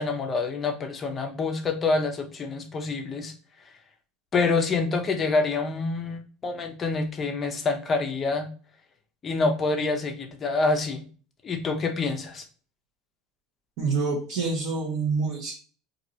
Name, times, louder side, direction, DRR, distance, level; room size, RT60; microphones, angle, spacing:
voice 1, 0.0-3.3 4.3-8.5 9.2-11.0 11.4-12.4, left 3 dB, 20° left, 5 dB, 0.5 m, -27 dB
voice 2, 13.8-15.5, right 4 dB, 50° right, -4 dB, 1.1 m, -27 dB
4.5 x 2.6 x 2.7 m, 0.39 s
cardioid pair, 165°, 0 cm